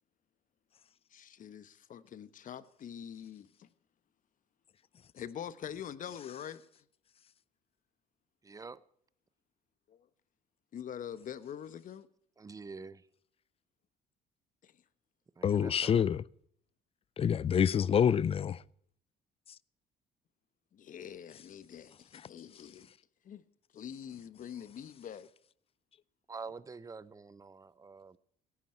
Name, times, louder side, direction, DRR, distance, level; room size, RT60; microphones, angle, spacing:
voice 1, 1.1-3.7 5.1-6.6 9.9-10.1 10.7-12.1 14.6-14.8 20.7-22.9 23.2-23.4 23.7-25.3, left 9 dB, 50° left, 1.2 m, -45 dB
voice 2, 8.4-8.8 12.4-13.1 15.4-16.0 26.3-28.2, right 4 dB, 20° right, 0.8 m, -46 dB
voice 3, 15.4-16.2 17.2-18.6, left 8 dB, 35° left, 0.5 m, -27 dB
17.0 x 14.5 x 4.5 m
cardioid pair, 110°, 17 cm